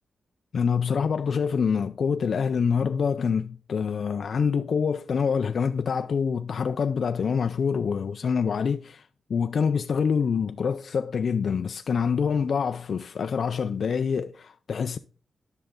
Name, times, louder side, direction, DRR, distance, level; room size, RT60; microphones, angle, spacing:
voice 1, 0.5-15.0, left 6 dB, 55° left, 0.3 m, -26 dB
10.5 x 6.6 x 3.7 m
wide cardioid pair, 180°, 0 cm